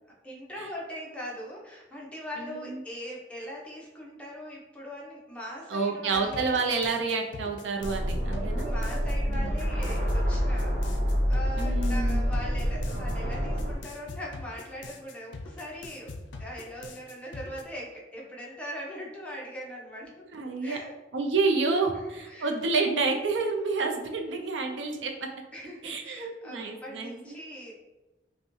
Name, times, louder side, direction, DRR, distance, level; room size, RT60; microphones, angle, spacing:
voice 1, 0.2-6.5 8.1-20.1 20.6-20.9 21.7-22.5 25.5-27.7, equal, 5° left, -4 dB, 0.8 m, -41 dB
voice 2, 2.4-2.8 5.7-8.7 9.3-9.5 11.6-12.2 20.3-20.8 21.1-25.3 25.8-27.3, right 4 dB, 85° right, 3 dB, 0.5 m, -29 dB
sound 1, 6.1-17.6, left 3 dB, 75° left, 0.4 m, -43 dB
sound 2, 7.8-13.7, equal, 65° right, 0.9 m, -27 dB
5.3 x 2.2 x 3.0 m, 1.1 s
head